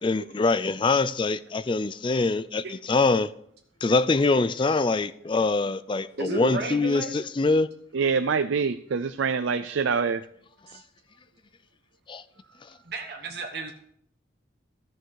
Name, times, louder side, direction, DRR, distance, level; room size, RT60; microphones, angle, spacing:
voice 1, 0.0-3.3 3.8-7.7 12.1-12.2, left 3 dB, 25° left, 0.4 m, -24 dB
voice 2, 6.1-7.2 10.7-10.8 12.8-13.7, right 3 dB, 55° right, 1.1 m, -34 dB
voice 3, 7.9-10.2, right 5 dB, 85° right, 0.5 m, -25 dB
14.5 x 6.5 x 4.7 m
head